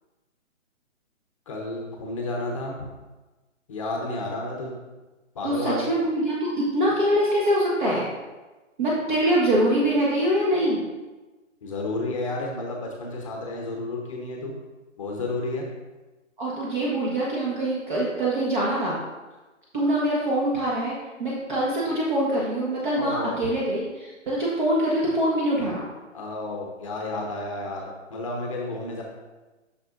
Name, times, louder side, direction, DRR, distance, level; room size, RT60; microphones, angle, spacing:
voice 1, 1.5-2.9 3.7-4.8 5.3-5.8 11.6-14.6 15.0-15.7 23.0-23.4 26.1-29.0, left 2 dB, 25° left, -1 dB, 0.9 m, -31 dB
voice 2, 5.4-8.0 8.8-10.9 16.4-19.0 19.7-25.8, right 1 dB, 40° right, -5 dB, 1.4 m, -24 dB
9.1 x 6.1 x 2.5 m, 1.2 s
hypercardioid pair, 155°, 39 cm